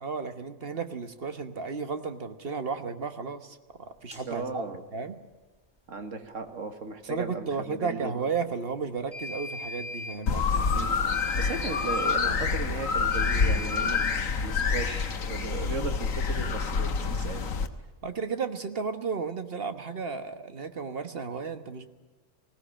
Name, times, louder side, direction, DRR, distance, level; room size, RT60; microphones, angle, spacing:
voice 1, 0.0-4.6 4.9-5.2 7.0-10.7 18.0-21.9, right 5 dB, 45° right, 9 dB, 1.4 m, -33 dB
sound 1, 4.1-4.2 9.1-10.2 11.1-12.2 13.1-14.2, left 2 dB, 5° right, 6.1 m, -38 dB
voice 2, 4.2-4.8 5.9-8.2 10.7-10.9 11.4-17.5, right 4 dB, 60° right, 7 dB, 2.1 m, -36 dB
sound 2, 10.3-17.7, left 5 dB, 70° left, 1.6 m, -27 dB
20.0 x 16.5 x 8.8 m, 1.3 s
omnidirectional pair, 1.5 m